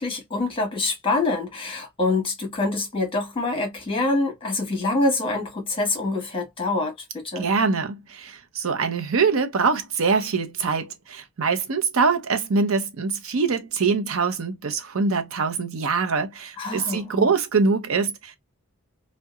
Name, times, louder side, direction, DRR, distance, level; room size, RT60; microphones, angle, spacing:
voice 1, 0.0-7.5 16.6-17.3, left 2 dB, 25° left, 1.1 m, -25 dB
voice 2, 7.4-18.4, right 4 dB, 75° right, 0.6 m, -24 dB
2.7 x 2.1 x 2.3 m
head